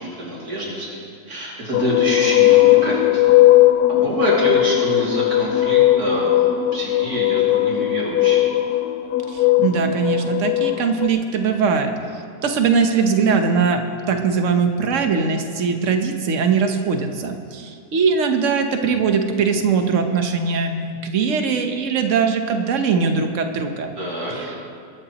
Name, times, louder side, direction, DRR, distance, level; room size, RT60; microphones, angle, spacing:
voice 1, 0.0-3.2 3.9-8.5 24.0-24.3, equal, 75° right, -5 dB, 3.0 m, -26 dB
sound 1, 1.7-11.1, left 14 dB, 80° left, 1.1 m, -17 dB
voice 2, 9.3-11.9 12.4-23.9 24.3-24.5, right 5 dB, 55° right, 5 dB, 1.3 m, -21 dB
22.5 x 12.5 x 3.0 m, 2.3 s
omnidirectional pair, 1.6 m